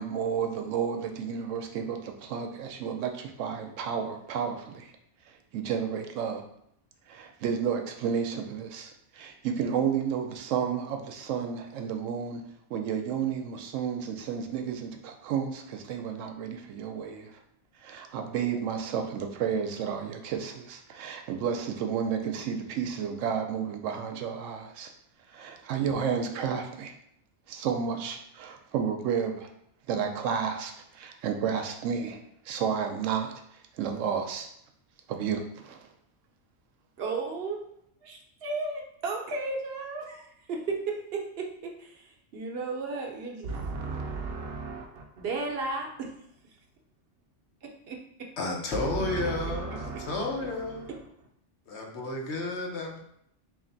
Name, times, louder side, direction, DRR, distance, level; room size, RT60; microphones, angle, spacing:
voice 1, 0.0-4.9 5.3-6.4 7.1-12.4 12.7-17.4 17.8-24.9 25.3-26.9 27.5-29.5 29.9-32.2 32.4-33.3 33.8-34.5 35.1-35.9, right 7 dB, 85° right, 5 dB, 0.9 m, -31 dB
voice 2, 37.0-37.6 38.0-41.5 41.8-46.1 47.9-48.0 48.7-51.0, right 3 dB, 60° right, 0 dB, 0.8 m, -34 dB
voice 3, 48.4-50.8 51.7-53.0, left 2 dB, 65° left, 1 dB, 0.9 m, -32 dB
3.3 x 2.7 x 3.9 m, 0.73 s
omnidirectional pair, 1.3 m